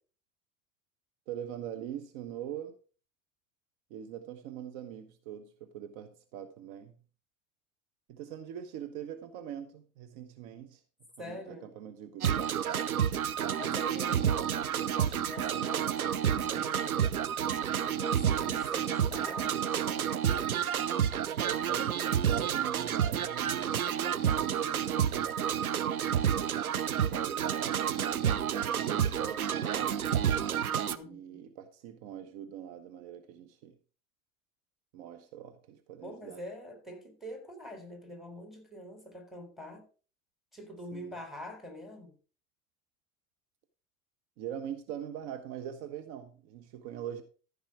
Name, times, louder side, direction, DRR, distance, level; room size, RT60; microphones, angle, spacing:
voice 1, 1.3-2.8 3.9-7.0 8.1-10.8 11.2-12.4 14.0-14.7 21.4-23.8 24.3-25.8 27.0-30.0 31.0-33.7 34.9-36.4 40.9-41.1 44.4-47.2, right 10 dB, 55° right, 1.2 m, -42 dB
voice 2, 11.2-11.7 13.6-14.4 15.0-17.1 17.9-20.1 30.9-31.4 36.0-39.9 40.5-42.2, equal, ahead, 3.8 m, -45 dB
sound 1, 12.2-31.0, right 9 dB, 90° right, 0.7 m, -30 dB
14.5 x 5.4 x 4.9 m
figure-of-eight pair, 75°, 42 cm